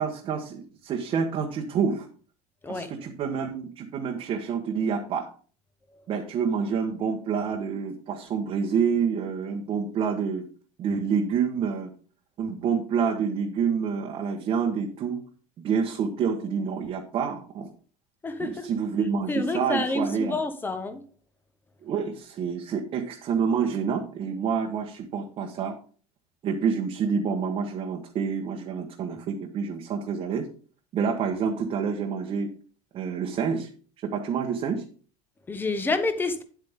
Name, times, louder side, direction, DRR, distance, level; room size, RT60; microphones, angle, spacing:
voice 1, 0.0-2.1 2.7-5.3 6.1-10.5 10.8-11.9 12.4-15.2 15.6-17.7 18.4-20.4 21.8-25.7 26.4-30.5 30.9-32.5 32.9-33.7 34.0-34.8, right 6 dB, 35° right, 1.3 m, -28 dB
voice 2, 18.2-18.7 19.3-21.0 35.5-36.4, left 3 dB, 15° left, 1.1 m, -28 dB
9.7 x 8.0 x 3.6 m
cardioid pair, 155°, 16 cm